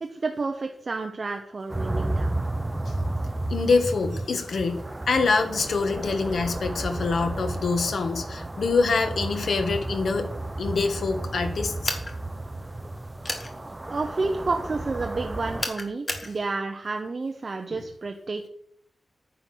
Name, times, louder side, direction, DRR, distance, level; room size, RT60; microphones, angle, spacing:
voice 1, 0.0-2.4 13.9-18.5, right 3 dB, 40° right, 4 dB, 0.9 m, -30 dB
sound 1, 1.7-15.7, right 2 dB, 15° right, 0.6 m, -32 dB
voice 2, 3.5-10.3 10.6-11.7, left 4 dB, 80° left, 7 dB, 1.6 m, -25 dB
sound 2, 11.8-12.1 13.2-13.5 15.6-16.3, left 2 dB, 35° left, 1.8 m, -30 dB
9.6 x 9.1 x 6.2 m, 0.67 s
wide cardioid pair, 170°, 0 cm